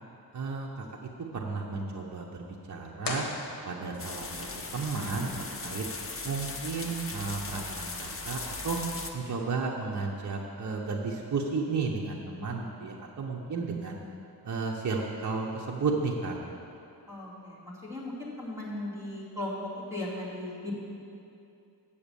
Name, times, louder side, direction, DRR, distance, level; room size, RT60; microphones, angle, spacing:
voice 1, 0.3-0.9 1.3-3.3 3.7-4.5 4.7-5.3 5.6-5.9 6.2-8.8 9.1-14.0 14.4-16.4, right 4 dB, 45° right, -1 dB, 0.8 m, -33 dB
sound 1, 3.0-4.2, left 3 dB, 60° left, 1.4 m, -36 dB
sound 2, 4.0-9.1, left 3 dB, 35° left, 0.7 m, -38 dB
voice 2, 17.1-19.6 19.9-20.7, left 1 dB, 5° right, -7 dB, 2.4 m, -37 dB
8.6 x 7.2 x 6.9 m, 2.7 s
wide cardioid pair, 145°, 39 cm